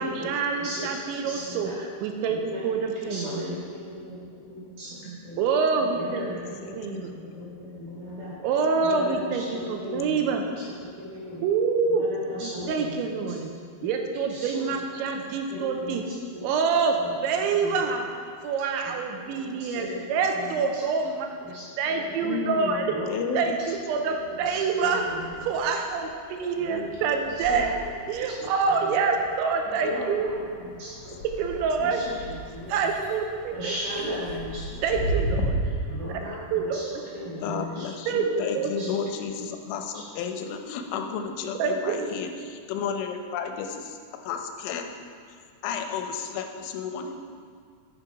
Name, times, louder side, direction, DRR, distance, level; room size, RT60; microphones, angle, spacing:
voice 1, 0.0-3.3 4.9-6.3 6.5-7.1 8.4-10.5 11.4-12.1 12.4-13.5 13.8-16.0 16.4-17.0 17.2-18.1 18.4-21.3 21.8-25.0 25.4-27.7 28.1-30.3 30.9-31.0 31.4-32.0 32.7-34.1 34.8-35.5 36.1-36.2 36.5-37.0 38.1-38.7 41.6-42.1, right 5 dB, 85° right, 4 dB, 3.0 m, -26 dB
voice 2, 1.3-1.7 2.3-2.6 3.1-4.2 4.5-4.9 5.2-5.4 5.9-7.1 7.4-8.3 8.8-9.3 9.6-10.2 11.0-11.4 11.9-12.9 14.3-14.6 15.5-16.0 17.0-17.1 17.6-17.7 18.8-18.9 19.2-20.5 20.7-20.8 21.4-22.0 22.9-23.1 23.6-23.7 24.0-25.2 27.5-27.7 28.3-28.4 28.8-28.9 29.8-30.3 30.8-30.9 31.9-32.0 32.5-32.8 33.5-34.6 35.9-36.8 37.1-37.8 38.1-38.3 38.8-38.9, equal, 50° right, -7 dB, 3.4 m, -36 dB
voice 3, 4.8-5.1 6.2-6.3 6.6-7.6 9.0-9.2 13.8-14.0 15.2-15.6 22.2-23.5 26.6-27.7 29.7-30.0 30.7-30.8 31.1-31.2 31.8-32.2 34.7-35.1 37.4-44.0 44.2-44.9 45.3-45.4 45.6-47.2, left 6 dB, 90° left, 5 dB, 3.2 m, -34 dB
sound 1, 22.4-23.5 23.8-35.5, right 1 dB, 60° left, 3.4 m, -37 dB
9.8 x 6.8 x 4.9 m, 2.2 s
omnidirectional pair, 5.3 m